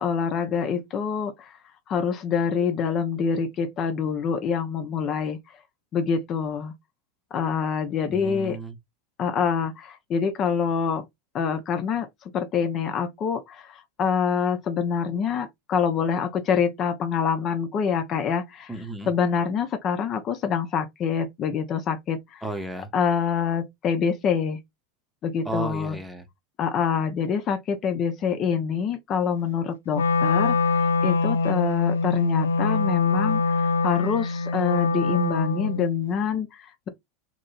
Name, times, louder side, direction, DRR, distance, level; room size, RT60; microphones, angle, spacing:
voice 1, 0.0-1.6 1.9-5.4 5.9-6.7 7.3-8.6 9.2-11.1 11.3-12.1 12.3-18.7 19.1-22.4 22.9-24.6 25.2-26.0 26.6-36.9, left 6 dB, 40° left, 0.7 m, -26 dB
voice 2, 8.1-8.8 18.7-19.1 22.4-22.9 25.4-26.3, right 2 dB, 5° right, 1.0 m, -33 dB
Wind instrument woodwind instrument, 29.9-35.9, left 3 dB, 80° left, 0.4 m, -23 dB
3.0 x 2.6 x 3.9 m
figure-of-eight pair, 85°, 0 cm